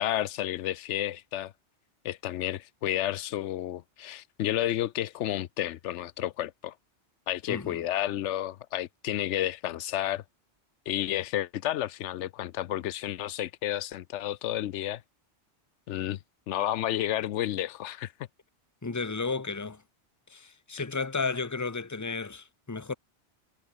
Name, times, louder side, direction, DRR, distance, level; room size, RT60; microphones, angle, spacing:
voice 1, 0.0-1.5 2.0-6.7 7.3-10.2 10.9-15.0 15.9-16.2 16.5-18.1, left 12 dB, 90° left, 0.9 m, -31 dB
voice 2, 7.5-7.8 18.8-19.8 20.3-22.9, left 4 dB, 15° left, 1.0 m, -33 dB
omnidirectional pair, 1.2 m